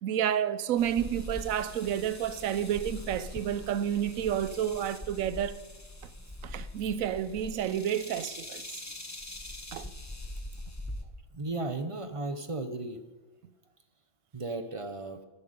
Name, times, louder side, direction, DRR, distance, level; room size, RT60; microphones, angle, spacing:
voice 1, 0.0-5.6 6.4-8.6 9.7-9.9, right 9 dB, 85° right, 1.0 m, -30 dB
sound 1, 0.8-11.0, left 1 dB, 15° left, 0.9 m, -42 dB
voice 2, 11.3-13.0 14.3-15.2, right 2 dB, 30° right, 0.8 m, -35 dB
14.5 x 11.0 x 5.3 m
omnidirectional pair, 1.4 m